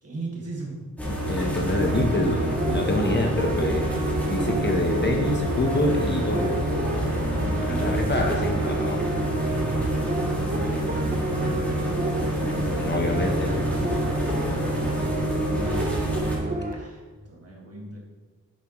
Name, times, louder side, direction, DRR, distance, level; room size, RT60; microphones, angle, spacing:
voice 1, 0.0-0.8 3.1-5.2 7.7-8.0 10.2-11.8 12.2-13.3 15.2-15.7 16.7-18.0, right 2 dB, 45° right, -2 dB, 1.9 m, -38 dB
sound 1, 1.0-16.4, equal, 5° left, 1.8 m, -27 dB
voice 2, 1.1-3.8 4.2-6.5 7.6-9.0 12.8-13.6, left 2 dB, 30° left, 2 dB, 0.8 m, -26 dB
sound 2, 1.7-16.7, right 2 dB, 25° right, 0.6 m, -31 dB
9.8 x 7.0 x 3.0 m, 1.3 s
wide cardioid pair, 175°, 34 cm